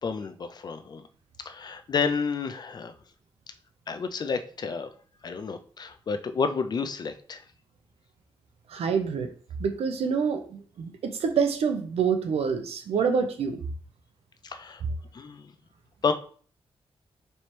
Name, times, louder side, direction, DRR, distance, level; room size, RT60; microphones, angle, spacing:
voice 1, 0.0-1.0 1.4-2.9 3.9-4.9 5.2-7.4 14.4-14.8 15.1-15.5 16.0-16.1, left 5 dB, 45° left, 9 dB, 0.4 m, -30 dB
voice 2, 8.7-9.3 9.6-13.6, right 6 dB, 85° right, 6 dB, 0.6 m, -27 dB
3.3 x 3.0 x 4.3 m, 0.43 s
wide cardioid pair, 155°, 10 cm